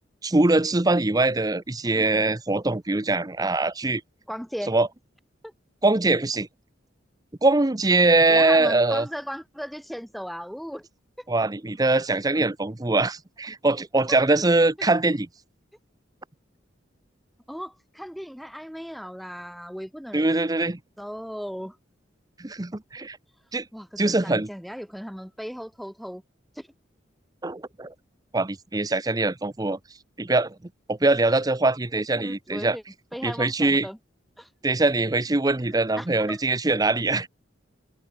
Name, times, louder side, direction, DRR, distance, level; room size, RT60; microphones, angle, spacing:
voice 1, 0.2-4.0 4.7-4.9 5.8-6.5 7.4-9.1 11.3-15.3 20.1-20.8 22.4-23.2 23.5-23.7 24.0-24.5 27.4-27.9 28.3-29.8 30.2-30.6 30.9-32.8 33.2-33.9 34.6-37.3, right 2 dB, 20° right, 0.7 m, -22 dB
voice 2, 4.3-4.7 5.4-5.5 8.3-10.9 11.2-11.3 14.1-14.2 14.8-14.9 17.5-20.3 21.0-21.8 23.7-26.2 26.6-26.7 32.1-32.8 33.1-34.0 34.4-34.5 35.7-36.4, equal, ahead, 7.8 m, -37 dB
head